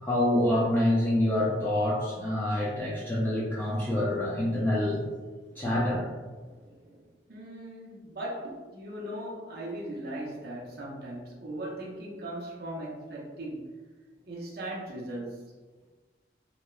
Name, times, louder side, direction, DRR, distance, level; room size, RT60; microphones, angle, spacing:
voice 1, 0.0-5.1 5.6-6.1, left 1 dB, 10° left, -8 dB, 0.3 m, -26 dB
voice 2, 6.4-13.7 14.3-15.4, right 1 dB, 55° right, -4 dB, 0.5 m, -39 dB
2.9 x 2.0 x 2.3 m, 1.3 s
head